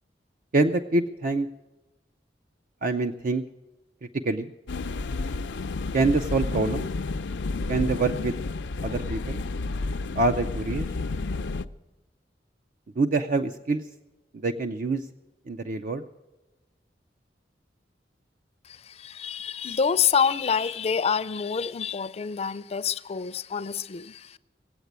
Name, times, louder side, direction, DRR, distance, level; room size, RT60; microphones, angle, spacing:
voice 1, 0.5-1.5 2.8-3.4 4.2-4.5 5.9-6.9 7.7-8.4 8.8-9.4 10.2-10.9 13.0-13.8 14.4-15.0 15.5-16.0, right 3 dB, 50° right, 0.5 m, -25 dB
sound 1, 4.7-11.7, left 3 dB, 85° left, 0.5 m, -31 dB
voice 2, 18.7-24.4, left 6 dB, 35° left, 0.4 m, -27 dB
18.5 x 8.1 x 8.0 m
head